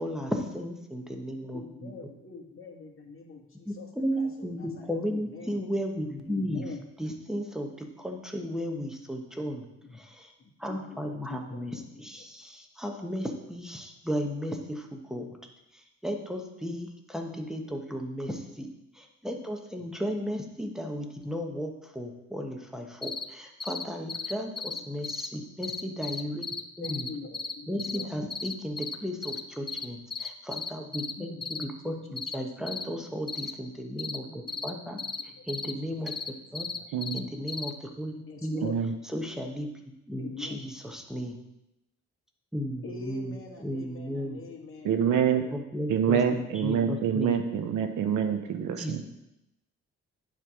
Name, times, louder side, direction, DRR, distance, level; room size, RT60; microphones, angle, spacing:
voice 1, 0.0-1.9 3.6-6.6 7.0-9.7 9.9-10.3 10.6-15.4 15.7-18.7 18.9-26.5 26.8-27.1 27.7-35.0 35.5-36.1 36.5-36.7 37.1-38.7 39.1-41.4 42.5-44.4 45.5-47.4 48.8-48.9, equal, ahead, 2 dB, 1.1 m, -35 dB
voice 2, 1.5-3.9 4.2-5.6 6.3-6.8 9.8-10.0 10.4-12.3 19.8-19.9 24.7-24.8 26.8-28.1 31.2-32.3 32.6-33.1 34.1-35.9 36.5-36.8 38.2-38.7 40.2-40.7 42.8-45.6 46.1-46.4, left 4 dB, 45° left, 0 dB, 1.6 m, -45 dB
sound 1, 23.0-23.3 23.6-23.8 24.1-25.3 25.6-27.5 27.8-28.0 28.3-29.0 29.2-29.4 29.7-29.9 30.1-31.1 31.4-31.6 32.2-32.4 32.7-32.8 33.3-33.5 34.0-34.2 34.5-34.7 35.0-35.2 35.5-35.7 36.1-37.2 37.5-37.7, left 4 dB, 15° left, 0.5 m, -34 dB
voice 3, 36.9-37.3 38.6-38.9 44.8-45.4 45.9-49.0, right 8 dB, 80° right, 7 dB, 0.9 m, -26 dB
9.9 x 3.4 x 6.1 m, 0.89 s
cardioid pair, 90°, 30 cm